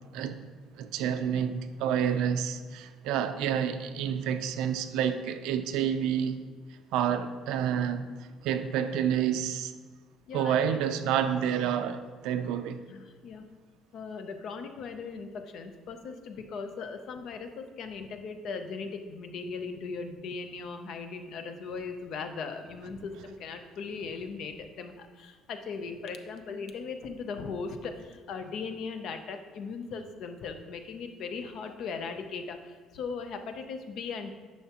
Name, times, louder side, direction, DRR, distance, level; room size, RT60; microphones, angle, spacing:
voice 1, 0.1-0.4 0.8-6.4 6.9-8.0 8.4-9.7 10.3-12.8, right 8 dB, 85° right, 0.5 m, -29 dB
voice 2, 10.3-10.6 12.9-13.5 13.9-34.3, left 5 dB, 50° left, 0.6 m, -38 dB
10.5 x 5.7 x 2.9 m
cardioid pair, 180°, 0 cm